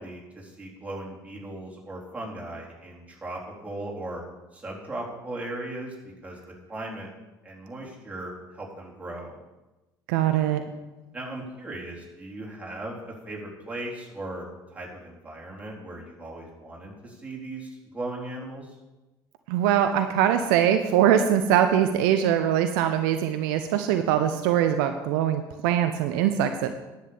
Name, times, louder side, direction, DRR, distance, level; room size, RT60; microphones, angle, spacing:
voice 1, 0.0-4.2 4.5-6.4 6.7-7.1 7.4-9.4 11.1-18.7, right 1 dB, 10° right, -3 dB, 3.8 m, -37 dB
voice 2, 10.1-10.6 19.5-26.7, right 10 dB, 60° right, 8 dB, 0.7 m, -22 dB
10.5 x 7.5 x 7.0 m, 1.1 s
figure-of-eight pair, 60°, 12 cm